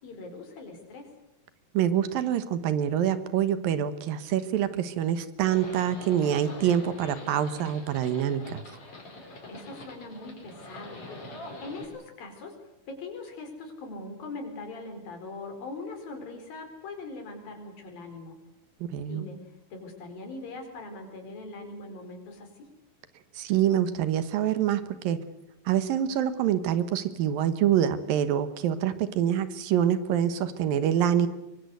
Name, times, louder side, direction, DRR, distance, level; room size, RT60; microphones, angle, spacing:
voice 1, 0.0-1.1 9.5-11.0 11.6-12.5 12.9-18.3 19.1-19.4 19.7-22.5, left 3 dB, 75° left, 5 dB, 6.2 m, -41 dB
voice 2, 1.7-8.6 18.8-19.3 23.4-25.2 25.7-31.3, right 10 dB, 75° right, 13 dB, 3.0 m, -26 dB
Livestock farm animals working animals, 5.4-11.8, left 2 dB, 40° left, 5.5 m, -44 dB
24.0 x 23.5 x 8.1 m, 0.88 s
omnidirectional pair, 4.1 m